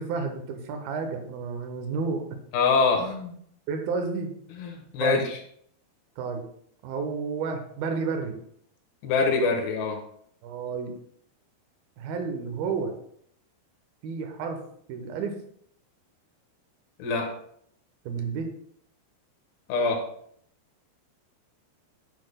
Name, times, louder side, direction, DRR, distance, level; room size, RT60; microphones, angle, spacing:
voice 1, 0.0-2.3 3.7-4.3 5.0-5.2 6.2-6.4 6.8-8.4 10.4-11.0 12.0-13.0 14.0-14.6 14.9-15.4 18.1-18.5, right 5 dB, 75° right, 5 dB, 2.6 m, -31 dB
voice 2, 2.5-3.3 4.6-5.4 9.0-10.0 17.0-17.3 19.7-20.0, left 4 dB, 90° left, 2 dB, 3.3 m, -24 dB
10.5 x 6.5 x 2.3 m, 0.66 s
omnidirectional pair, 4.6 m